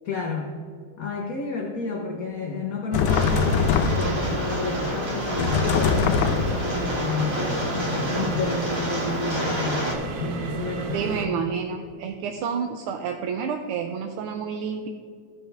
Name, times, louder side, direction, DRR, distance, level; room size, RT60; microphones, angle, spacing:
voice 1, 0.0-0.6 1.0-9.9 10.2-11.4, left 4 dB, 55° left, 0 dB, 1.1 m, -30 dB
sound 1, 2.9-4.3 5.4-6.7, left 6 dB, 90° left, 1.5 m, -22 dB
sound 2, 2.9-11.3, right 3 dB, 65° right, 1.4 m, -33 dB
Rain, 3.1-9.9, equal, 15° right, 1.1 m, -29 dB
voice 2, 10.9-14.9, right 6 dB, 85° right, 5 dB, 1.5 m, -29 dB
16.0 x 5.6 x 3.4 m, 2.2 s
omnidirectional pair, 2.4 m